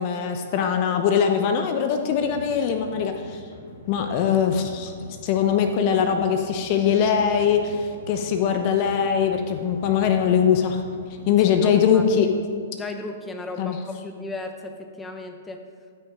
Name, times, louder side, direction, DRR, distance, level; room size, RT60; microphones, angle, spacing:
voice 1, 0.0-3.4 3.9-4.9 5.2-10.8 11.3-12.3 13.6-13.8, left 7 dB, 45° left, 6 dB, 0.8 m, -21 dB
sound 1, 2.1-12.1, equal, 65° left, 1.6 m, -44 dB
voice 2, 11.6-12.0 12.7-15.6, left 2 dB, 15° left, 5 dB, 1.0 m, -36 dB
13.0 x 6.3 x 4.9 m, 2.1 s
hypercardioid pair, 115°, 0 cm